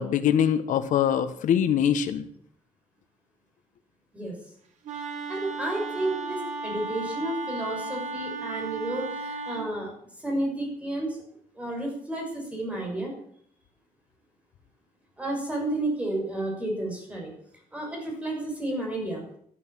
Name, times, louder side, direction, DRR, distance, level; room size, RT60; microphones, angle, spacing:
voice 1, 0.0-2.2, left 9 dB, 85° left, 10 dB, 1.3 m, -23 dB
Wind instrument woodwind instrument, 4.8-9.7, right 4 dB, 70° right, 3.1 m, -34 dB
voice 2, 5.3-9.9 10.2-11.2 11.6-13.1 15.2-17.3 17.7-19.2, right 1 dB, 10° right, 0 dB, 6.5 m, -31 dB
13.0 x 12.0 x 8.9 m, 0.64 s
wide cardioid pair, 180°, 13 cm